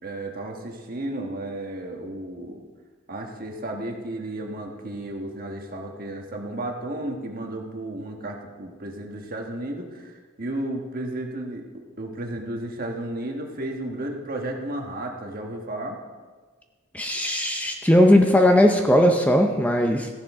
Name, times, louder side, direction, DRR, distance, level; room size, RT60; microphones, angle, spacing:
voice 1, 0.0-2.7 3.1-16.0, right 1 dB, 45° right, 2 dB, 1.4 m, -33 dB
voice 2, 16.9-20.1, left 1 dB, 5° left, 4 dB, 0.6 m, -18 dB
14.5 x 10.5 x 3.6 m, 1.4 s
head